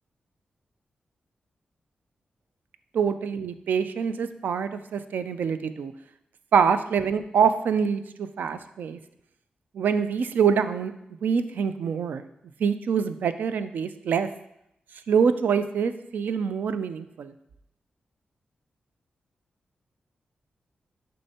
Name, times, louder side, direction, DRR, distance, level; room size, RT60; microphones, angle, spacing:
voice 1, 2.9-5.9 6.5-9.0 9.7-10.9 11.2-12.2 12.6-14.3 15.1-17.3, right 6 dB, 80° right, 11 dB, 0.3 m, -25 dB
6.4 x 5.3 x 2.8 m, 0.79 s
wide cardioid pair, 125°, 3 cm